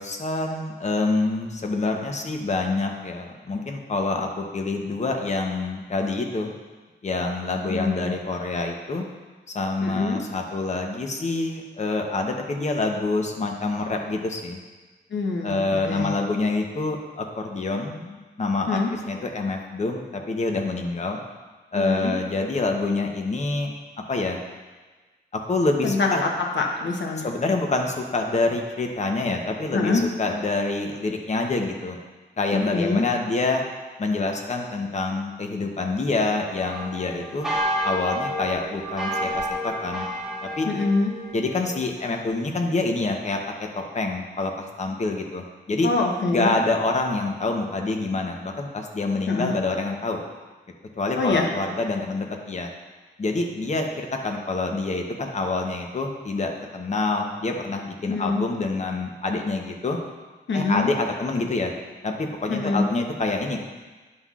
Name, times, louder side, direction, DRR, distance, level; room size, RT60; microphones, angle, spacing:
voice 1, 0.0-6.5 7.0-9.1 9.5-14.6 15.4-18.8 19.1-21.2 21.7-23.7 24.1-24.4 25.3-26.2 27.2-32.0 32.4-33.6 34.0-37.5 37.8-40.1 40.6-40.7 41.3-45.9 46.3-50.2 51.0-52.7 53.2-60.0 60.5-61.7 62.0-63.6, left 3 dB, 40° left, 2 dB, 0.8 m, -26 dB
voice 2, 7.7-8.1 9.8-10.2 15.1-16.1 18.7-18.9 21.7-22.1 25.8-27.3 29.7-30.0 32.5-33.0 40.7-41.1 45.8-46.5 49.3-49.5 51.2-51.5 58.1-58.4 60.5-60.9 62.5-62.8, left 3 dB, 80° left, 1 dB, 1.0 m, -25 dB
sound 1, 36.5-42.3, equal, ahead, 1.4 m, -30 dB
9.6 x 5.7 x 2.4 m, 1.3 s
wide cardioid pair, 125°, 19 cm